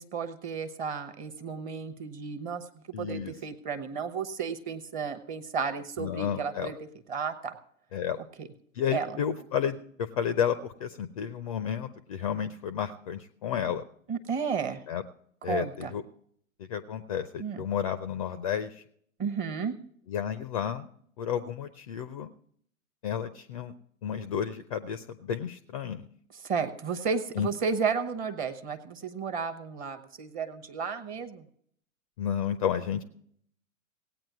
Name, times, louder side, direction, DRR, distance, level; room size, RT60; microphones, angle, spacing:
voice 1, 0.0-2.6 3.0-6.8 7.1-7.5 8.4-8.5 8.9-9.2 14.1-14.8 15.5-15.9 17.4-17.6 19.2-19.8 26.4-31.4, right 6 dB, 20° right, 10 dB, 0.8 m, -33 dB
voice 2, 2.9-3.3 6.0-6.7 7.9-8.2 8.8-13.8 14.9-15.0 15.4-16.0 16.6-18.8 20.1-20.8 21.2-22.3 23.0-23.7 24.0-26.0 27.4-27.5 32.2-33.0, left 8 dB, 25° left, 13 dB, 0.4 m, -31 dB
17.0 x 8.8 x 4.6 m, 0.65 s
figure-of-eight pair, 110°, 42 cm